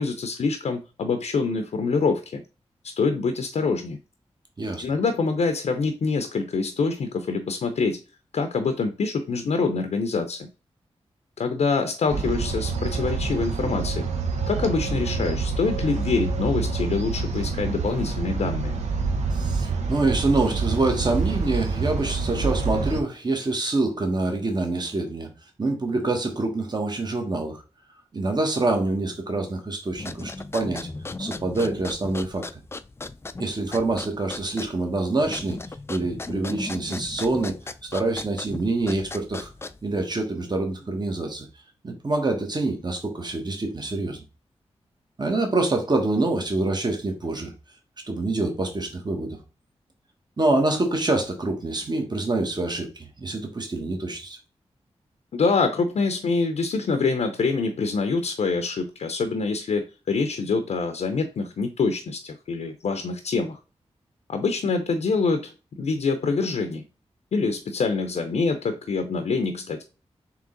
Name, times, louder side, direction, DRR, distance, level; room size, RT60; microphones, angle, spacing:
voice 1, 0.0-2.4 3.0-4.0 4.8-8.0 8.3-10.5 11.4-14.1 14.5-18.7 55.3-63.6 64.3-65.5 65.8-66.8 67.3-69.8, left 4 dB, 70° left, 0.5 m, -25 dB
Ambiente Serralves, 12.1-23.0, right 4 dB, 85° right, 0.6 m, -27 dB
voice 2, 19.3-25.3 25.6-27.6 28.1-30.9 31.2-32.5 33.4-35.6 35.9-37.6 37.8-39.5 39.8-41.5 41.8-44.2 45.2-47.5 48.0-49.4 50.4-54.4, right 2 dB, 40° right, 1.2 m, -26 dB
sound 1, 29.9-40.0, left 3 dB, 20° left, 0.3 m, -37 dB
3.7 x 3.0 x 3.8 m
cardioid pair, 50°, 12 cm